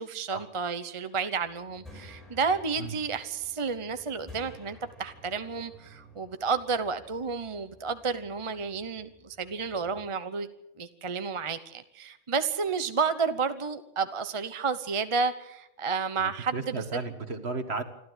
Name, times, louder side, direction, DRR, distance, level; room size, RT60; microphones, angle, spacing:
voice 1, 0.0-10.5 10.8-16.8, right 5 dB, 30° right, 10 dB, 0.9 m, -31 dB
sound 1, 1.4-10.1, left 1 dB, ahead, 5.9 m, -53 dB
voice 2, 16.2-17.8, right 3 dB, 60° right, 8 dB, 2.0 m, -34 dB
27.0 x 13.0 x 8.1 m, 0.83 s
omnidirectional pair, 1.3 m